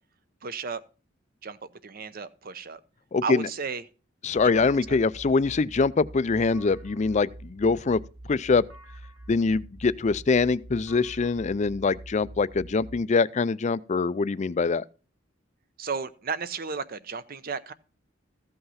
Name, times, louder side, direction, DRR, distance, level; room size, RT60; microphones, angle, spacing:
voice 1, 0.4-0.8 1.4-2.8 3.2-3.8 4.4-5.0 15.8-17.7, right 5 dB, 50° right, 0.8 m, -34 dB
voice 2, 3.1-3.5 4.2-8.0 8.3-8.7 9.3-14.8, left 4 dB, 35° left, 0.4 m, -24 dB
sound 1, 4.4-13.0, right 1 dB, 85° right, 3.1 m, -45 dB
15.0 x 5.6 x 5.6 m
head